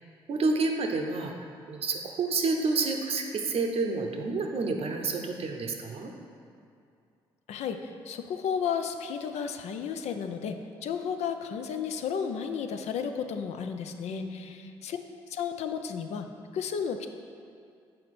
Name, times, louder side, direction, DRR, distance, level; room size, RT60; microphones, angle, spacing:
voice 1, 0.3-1.3 1.7-6.1 14.1-14.3, right 3 dB, 55° right, 3 dB, 0.7 m, -29 dB
voice 2, 7.5-15.0 15.3-16.3 16.5-17.1, left 7 dB, 70° left, 7 dB, 0.4 m, -33 dB
6.5 x 4.2 x 4.2 m, 2.4 s
hypercardioid pair, 50°, 12 cm